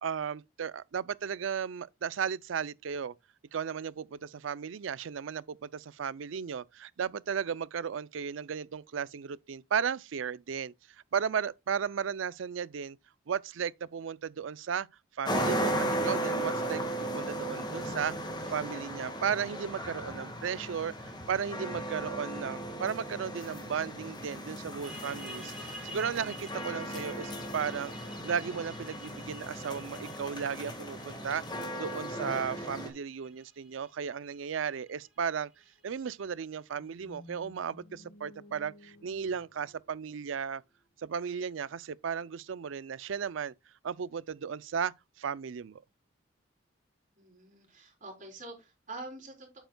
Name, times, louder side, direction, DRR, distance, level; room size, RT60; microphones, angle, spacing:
voice 1, 0.0-3.1 3.5-10.7 11.1-13.0 13.3-14.9 15.2-18.1 18.5-27.9 28.2-35.5 35.8-40.6 41.0-43.5 43.8-45.8, right 7 dB, 75° right, 0.4 m, -35 dB
sound 1, 15.2-32.9, right 1 dB, 25° left, 1.6 m, -36 dB
sound 2, 24.8-36.2, equal, 5° right, 2.6 m, -51 dB
sound 3, 36.7-40.8, left 1 dB, 80° left, 3.5 m, -55 dB
voice 2, 47.2-49.6, right 2 dB, 40° right, 3.7 m, -46 dB
8.8 x 7.9 x 2.2 m
head